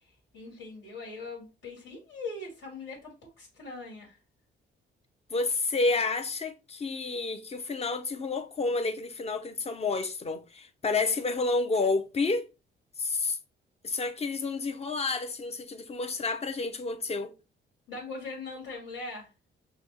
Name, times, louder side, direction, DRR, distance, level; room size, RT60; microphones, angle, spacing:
voice 1, 0.3-4.2 17.9-19.3, left 3 dB, 65° left, 2.0 m, -41 dB
voice 2, 5.3-12.5 13.0-13.4 13.8-17.3, left 3 dB, 30° left, 0.7 m, -30 dB
5.7 x 2.2 x 3.1 m
cardioid pair, 90°, 20 cm